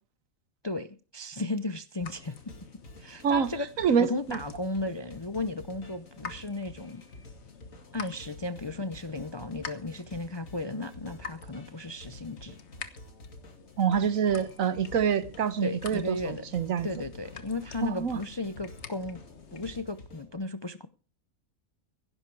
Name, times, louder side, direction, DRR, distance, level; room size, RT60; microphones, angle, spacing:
voice 1, 0.6-2.4 3.0-3.7 4.0-7.0 7.9-12.6 15.6-16.4 16.8-19.2 19.5-20.9, left 2 dB, 30° left, 0.5 m, -35 dB
sound 1, 2.0-19.8, left 6 dB, 55° left, 1.5 m, -48 dB
sound 2, 2.2-20.3, left 1 dB, 70° left, 2.8 m, -50 dB
voice 2, 3.8-4.4 13.8-16.9 17.8-18.2, right 7 dB, 75° right, 1.4 m, -26 dB
16.5 x 11.0 x 4.7 m
omnidirectional pair, 1.4 m